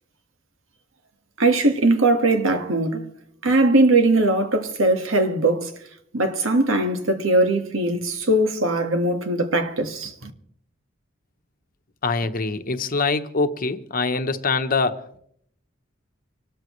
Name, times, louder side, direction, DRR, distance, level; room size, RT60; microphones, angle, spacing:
voice 1, 1.4-3.0 3.4-5.7 6.1-10.3, right 2 dB, 85° right, 1.7 m, -20 dB
voice 2, 12.0-15.2, left 4 dB, 45° left, 1.0 m, -24 dB
25.5 x 13.0 x 3.2 m
head